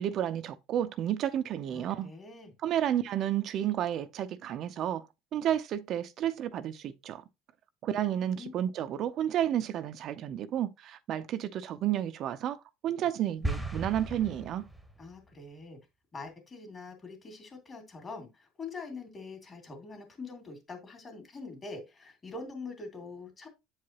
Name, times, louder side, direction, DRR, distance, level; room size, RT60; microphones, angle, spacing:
voice 1, 0.0-2.1 2.6-7.2 7.8-14.6, right 11 dB, 55° right, 0.6 m, -31 dB
voice 2, 1.7-2.5 8.3-8.5 15.0-15.8 16.1-23.5, left 3 dB, 30° left, 2.5 m, -44 dB
sound 1, 13.4-15.1, right 1 dB, ahead, 1.1 m, -36 dB
8.1 x 4.8 x 2.9 m
supercardioid pair, 110°, 0 cm